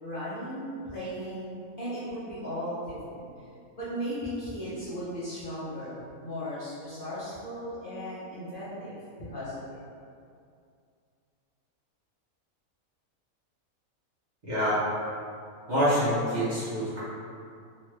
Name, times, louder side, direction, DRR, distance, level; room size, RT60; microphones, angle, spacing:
voice 1, 0.0-3.3 3.8-8.9 9.3-9.8, equal, 45° left, -12 dB, 0.8 m, -36 dB
voice 2, 14.5-14.8 15.7-17.0, equal, 40° right, -13 dB, 0.8 m, -26 dB
3.0 x 2.3 x 3.1 m, 2.3 s
omnidirectional pair, 1.5 m